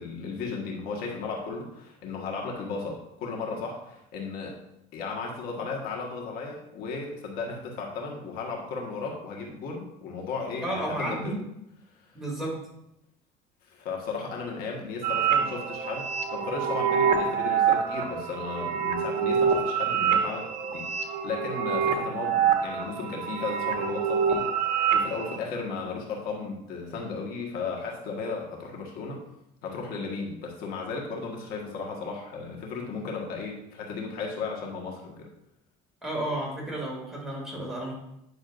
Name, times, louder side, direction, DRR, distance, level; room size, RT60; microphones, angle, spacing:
voice 1, 0.0-4.6 4.9-11.3 11.9-12.1 13.6-24.5 24.9-29.2 29.6-35.3, left 4 dB, 70° left, 0 dB, 1.5 m, -35 dB
voice 2, 10.6-11.4 12.1-12.6 36.0-37.9, right 1 dB, ahead, -4 dB, 2.7 m, -32 dB
sound 1, 15.0-25.4, right 7 dB, 50° right, 1.2 m, -26 dB
9.5 x 6.2 x 2.6 m, 0.83 s
cardioid pair, 130°, 16 cm